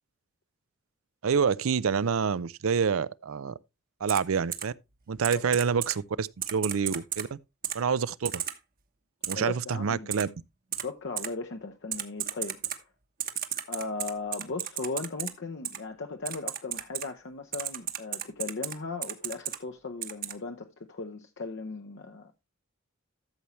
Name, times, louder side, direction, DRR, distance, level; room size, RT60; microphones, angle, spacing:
voice 1, 1.2-3.6 4.0-4.7 5.1-7.4 7.7-8.4 9.3-10.3, right 6 dB, 80° right, 0.5 m, -27 dB
Typing, 4.1-4.2 4.5-4.6 5.2-5.9 6.4-7.2 7.6-7.8 8.2-8.5 9.2-9.3 10.1-10.2 10.7-10.8 11.2-11.3 11.9-12.8 13.2-15.3 15.6-15.8 16.2-17.0 17.5-18.7 19.0-19.6 20.0-20.3, right 10 dB, 45° right, 1.1 m, -33 dB
voice 2, 9.3-10.3 10.8-12.9 13.7-22.4, left 3 dB, 60° left, 0.8 m, -37 dB
13.0 x 6.9 x 3.1 m
head